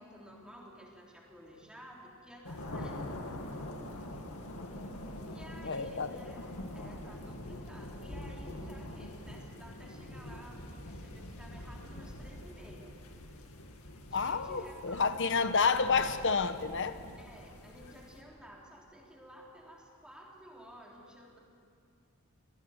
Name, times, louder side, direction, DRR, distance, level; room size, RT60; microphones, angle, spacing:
voice 1, 0.0-3.3 5.3-12.9 14.1-15.7 17.2-21.4, equal, 5° right, -2 dB, 3.5 m, -53 dB
sound 1, 2.4-18.2, left 1 dB, 85° left, 2.2 m, -44 dB
voice 2, 5.6-6.2 14.1-17.0, left 5 dB, 55° left, 11 dB, 1.0 m, -29 dB
24.0 x 19.5 x 7.3 m, 2.4 s
head